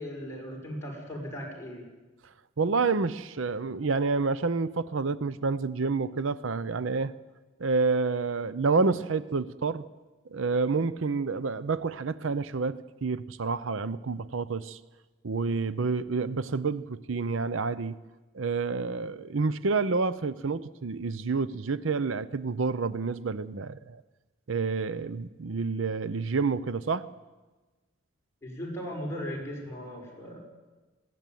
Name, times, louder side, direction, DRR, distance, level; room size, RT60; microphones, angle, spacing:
voice 1, 0.0-1.9 28.4-30.4, equal, 15° left, -2 dB, 5.7 m, -37 dB
voice 2, 2.6-7.1 7.6-9.8 10.3-14.8 15.2-18.0 18.3-24.0 24.5-27.1, right 4 dB, 75° right, 16 dB, 0.6 m, -29 dB
21.0 x 17.0 x 9.2 m, 1.2 s
head